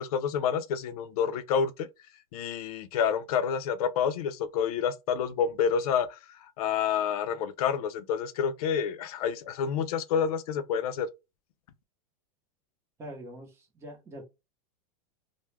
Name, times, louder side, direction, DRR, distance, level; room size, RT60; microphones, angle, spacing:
voice 1, 0.0-1.9 2.3-6.2 6.6-11.1, left 7 dB, 75° left, 0.5 m, -28 dB
voice 2, 13.0-14.2, equal, 15° right, 0.7 m, -44 dB
2.2 x 2.0 x 3.2 m
supercardioid pair, 150°, 19 cm